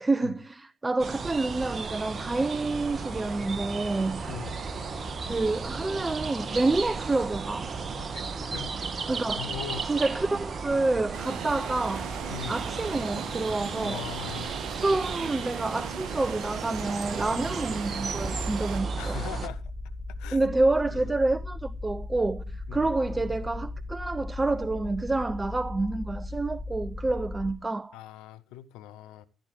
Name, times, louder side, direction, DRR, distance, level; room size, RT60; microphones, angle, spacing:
voice 1, 0.0-4.2 5.3-7.7 9.1-9.5 9.8-12.1 12.5-14.0 14.8-19.2 20.3-28.0, right 2 dB, 20° right, 0.6 m, -28 dB
sound 1, 1.0-19.5, right 4 dB, 45° right, 1.6 m, -35 dB
voice 2, 4.3-4.6 8.1-8.2 8.5-8.8 9.4-9.9 12.3-12.6 13.8-14.6 17.3-17.5 19.0-19.6 20.2-20.4 20.9-21.1 22.7-23.7 27.9-29.2, left 11 dB, 70° left, 1.0 m, -41 dB
sound 2, 11.1-18.8, right 9 dB, 65° right, 1.1 m, -39 dB
sound 3, 18.2-27.5, left 2 dB, 15° left, 4.6 m, -37 dB
16.0 x 9.4 x 5.0 m
figure-of-eight pair, 40°, 0 cm